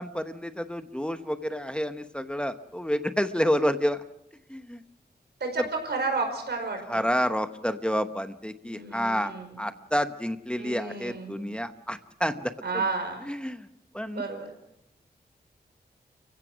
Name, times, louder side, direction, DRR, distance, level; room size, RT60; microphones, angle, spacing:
voice 1, 0.0-4.0 4.5-4.8 5.6-5.7 6.9-9.3 9.6-12.9 13.2-13.7 13.9-14.2, equal, 5° left, 9 dB, 0.9 m, -29 dB
voice 2, 5.4-7.0 8.6-9.5 10.6-11.5 12.6-13.3 14.0-14.5, right 4 dB, 80° right, 4 dB, 5.2 m, -32 dB
30.0 x 16.0 x 6.1 m, 0.81 s
wide cardioid pair, 110°, 17 cm